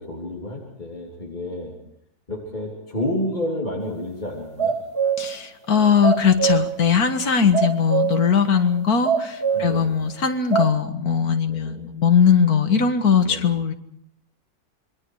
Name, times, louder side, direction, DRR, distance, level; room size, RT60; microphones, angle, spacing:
voice 1, 0.0-1.7 2.3-4.7 9.5-10.0 11.5-11.9 13.2-13.5, left 1 dB, 30° left, -3 dB, 3.7 m, -30 dB
sound 1, 3.8-3.9 4.4-5.3 5.7-6.7 7.2-7.3 7.5-8.2 8.7-8.8 9.0-9.7 10.2-10.7, right 7 dB, 75° right, 4.0 m, -23 dB
voice 2, 5.2-13.7, left 6 dB, 75° left, 7 dB, 2.1 m, -20 dB
27.5 x 23.0 x 4.8 m, 0.74 s
omnidirectional pair, 1.6 m